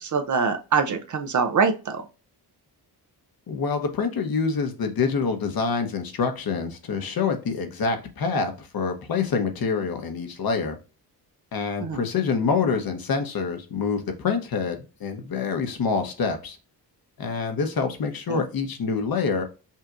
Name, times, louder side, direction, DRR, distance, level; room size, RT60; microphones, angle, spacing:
voice 1, 0.0-2.0 11.8-12.0 18.3-18.4, right 5 dB, 50° right, 6 dB, 0.7 m, -24 dB
voice 2, 3.5-10.8 11.5-16.6 17.2-19.4, left 5 dB, 60° left, 6 dB, 1.0 m, -26 dB
5.6 x 2.9 x 2.5 m, 0.31 s
cardioid pair, 105°, 40 cm